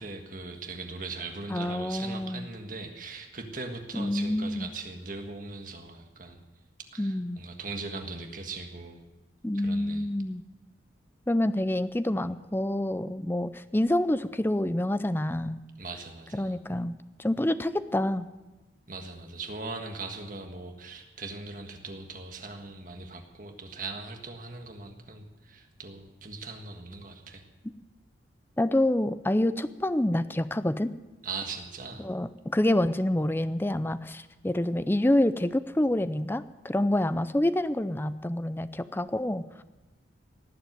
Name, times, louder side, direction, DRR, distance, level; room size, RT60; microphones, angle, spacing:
voice 1, 0.0-6.4 6.9-9.0 9.5-10.1 15.8-16.6 18.9-27.4 31.2-32.1, right 3 dB, 45° right, 4 dB, 1.6 m, -40 dB
voice 2, 1.5-2.5 3.9-4.7 7.0-7.4 9.4-10.4 11.3-15.6 16.3-18.3 28.6-30.9 32.0-39.6, left 1 dB, 10° left, 13 dB, 0.5 m, -27 dB
18.0 x 7.9 x 9.3 m, 1.1 s
head